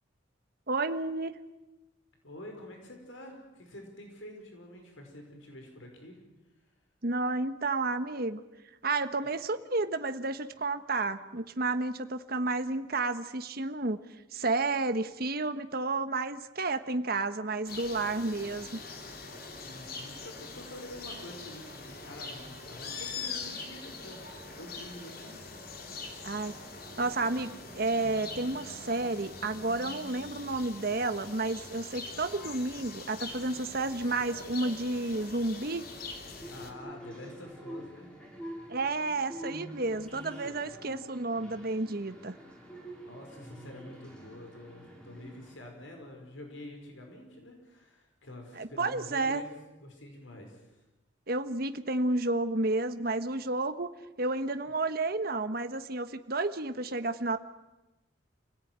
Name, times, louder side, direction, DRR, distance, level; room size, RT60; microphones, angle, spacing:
voice 1, 0.7-1.4 7.0-8.4 8.8-14.0 14.3-18.8 26.2-26.5 27.0-35.8 38.7-42.3 48.6-49.4 51.3-53.9 54.2-57.4, right 2 dB, 50° right, 9 dB, 1.2 m, -31 dB
voice 2, 2.2-6.2 19.6-25.4 36.5-38.1 39.8-40.0 40.4-40.6 43.0-49.5 49.8-50.7, left 1 dB, 80° left, 3 dB, 5.4 m, -47 dB
sound 1, 17.6-36.7, left 4 dB, 50° left, 3.3 m, -43 dB
sound 2, 36.4-45.6, right 1 dB, 5° left, 5.4 m, -46 dB
29.0 x 17.5 x 9.5 m, 1.0 s
head